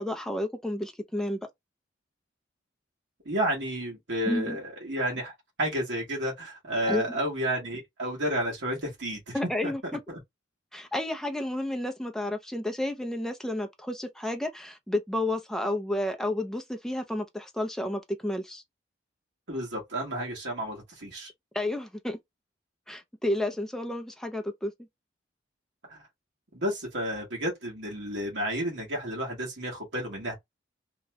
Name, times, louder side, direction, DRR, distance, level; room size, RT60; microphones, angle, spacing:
voice 1, 0.0-1.4 4.3-4.6 6.9-7.0 9.3-10.0 10.7-18.6 21.5-22.2 22.9-24.7, left 1 dB, ahead, 0.5 m, -31 dB
voice 2, 3.2-9.7 19.5-21.3 25.9-26.0 26.5-30.3, equal, 70° right, 1.3 m, -31 dB
2.9 x 2.2 x 2.9 m
head